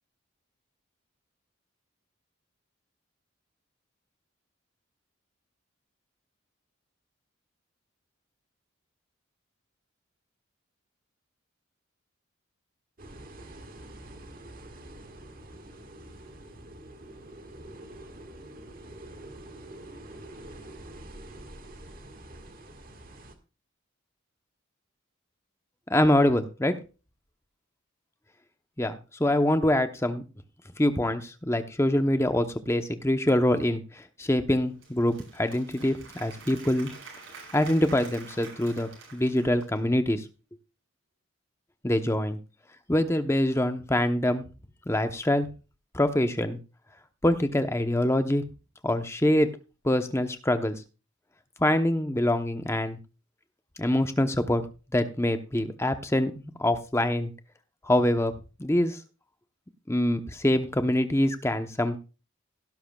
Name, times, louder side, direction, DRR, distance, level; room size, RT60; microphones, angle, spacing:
sound 1, 13.0-23.3, right 1 dB, 45° right, 1.6 m, -46 dB
voice 1, 25.9-26.7 28.8-30.2 30.8-36.9 37.5-40.2 41.8-42.4 42.9-44.4 44.9-45.5 45.9-46.6 47.2-48.4 48.8-49.5 49.8-50.8 51.6-53.0 53.8-54.6 54.9-57.3 57.8-58.3 58.6-59.0 59.9-62.0, left 1 dB, 15° left, 8 dB, 0.8 m, -25 dB
Applause / Crowd, 34.6-40.0, right 4 dB, 70° right, 7.0 m, -47 dB
17.0 x 11.5 x 2.3 m, 0.33 s
head